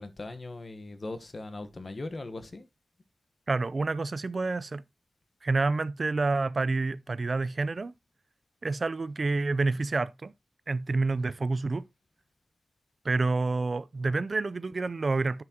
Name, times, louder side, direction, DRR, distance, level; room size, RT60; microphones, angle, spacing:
voice 1, 0.0-2.7 11.2-11.3, left 2 dB, 40° left, 1.1 m, -39 dB
voice 2, 3.5-4.8 5.4-8.0 8.6-10.3 10.7-11.8 13.0-15.4, right 3 dB, 45° right, 0.5 m, -28 dB
11.0 x 6.0 x 2.9 m
wide cardioid pair, 105°, 0 cm